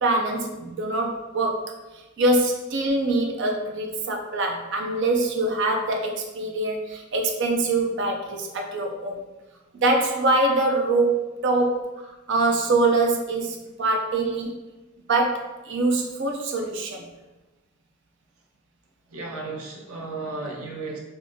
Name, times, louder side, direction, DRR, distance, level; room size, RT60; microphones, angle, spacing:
voice 1, 0.0-1.7 2.2-9.2 9.7-14.6 15.1-17.0, right 2 dB, 55° right, 2 dB, 0.4 m, -24 dB
voice 2, 19.1-21.0, right 3 dB, 85° right, -1 dB, 0.8 m, -34 dB
3.5 x 2.6 x 2.6 m, 1.1 s
head